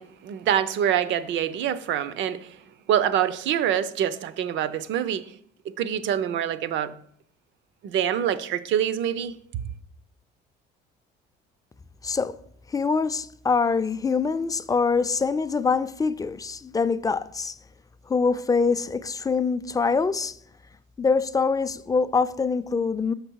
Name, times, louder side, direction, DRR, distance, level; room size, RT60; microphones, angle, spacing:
voice 1, 0.0-2.6 2.9-5.3 5.8-6.9 7.8-9.4, right 10 dB, 65° right, 0.6 m, -25 dB
voice 2, 12.0-12.4 12.7-17.5 18.1-20.4 21.0-23.1, left 4 dB, 15° left, 0.4 m, -24 dB
6.6 x 5.3 x 4.6 m
cardioid pair, 90°, 21 cm